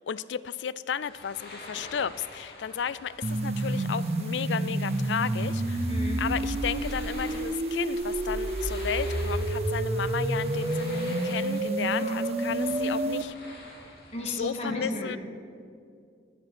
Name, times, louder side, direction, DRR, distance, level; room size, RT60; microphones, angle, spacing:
voice 1, 0.1-5.8 6.2-13.3 14.4-15.2, left 7 dB, 85° left, 18 dB, 0.4 m, -33 dB
sound 1, 1.0-14.4, left 2 dB, 55° left, 2.9 m, -46 dB
sound 2, 3.2-13.2, right 2 dB, 35° right, 0.5 m, -29 dB
voice 2, 5.9-6.2 11.9-12.2 14.1-15.2, equal, 35° left, 0 dB, 2.0 m, -34 dB
10.5 x 8.9 x 9.9 m, 2.3 s
head